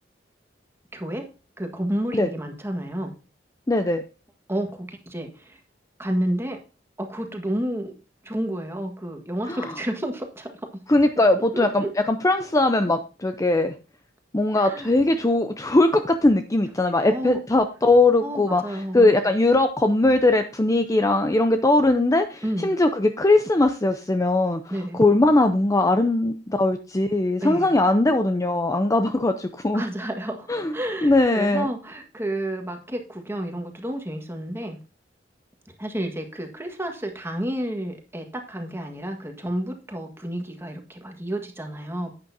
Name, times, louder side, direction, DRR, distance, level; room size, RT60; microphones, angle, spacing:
voice 1, 0.9-1.2 1.6-3.1 4.5-5.6 6.0-6.6 7.0-7.9 8.2-10.5 11.5-11.9 14.5-15.1 17.1-17.4 18.2-19.2 22.4-22.7 24.7-25.0 27.4-27.7 29.7-34.8 35.8-42.1, right 1 dB, 15° right, 4 dB, 1.7 m, -30 dB
voice 2, 3.7-4.0 9.5-9.7 10.9-13.7 14.3-24.6 24.9-29.8 30.5-30.7 31.0-31.7, left 2 dB, 20° left, 7 dB, 0.6 m, -20 dB
10.5 x 9.1 x 2.7 m, 0.33 s
head